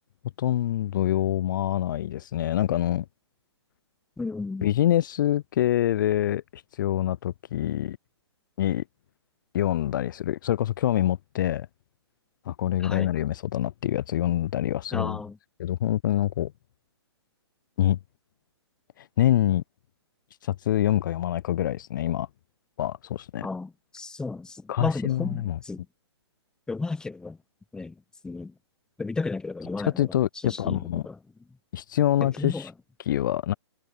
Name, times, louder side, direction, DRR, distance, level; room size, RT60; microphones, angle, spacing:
voice 1, 0.4-3.0 4.6-8.0 8.6-8.8 9.5-11.7 12.5-15.2 15.6-16.5 17.8-18.0 19.0-19.6 20.4-22.3 22.8-23.5 24.7-25.6 30.0-31.0 31.7-32.7 33.1-33.5, left 12 dB, 45° left, 0.5 m, -25 dB
voice 2, 4.2-4.7 12.8-13.1 14.9-15.4 23.4-25.8 26.7-27.4 27.7-27.9 28.2-28.5 29.0-30.1 30.4-31.2 32.2-32.7, left 3 dB, 5° left, 0.9 m, -33 dB
figure-of-eight pair, 125°, 14 cm